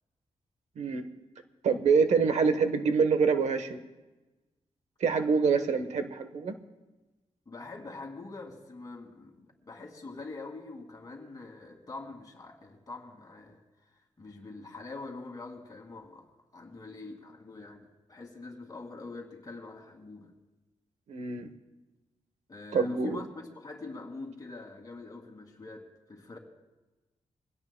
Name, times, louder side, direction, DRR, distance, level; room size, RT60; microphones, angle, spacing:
voice 1, 0.8-1.1 1.6-3.8 5.0-6.5 21.1-21.5 22.7-23.2, right 5 dB, 80° right, 9 dB, 1.1 m, -26 dB
voice 2, 7.5-13.6 13.9-20.3 22.5-26.4, left 3 dB, 30° left, 1 dB, 2.4 m, -44 dB
23.0 x 17.0 x 2.2 m, 1.1 s
wide cardioid pair, 110°, 12 cm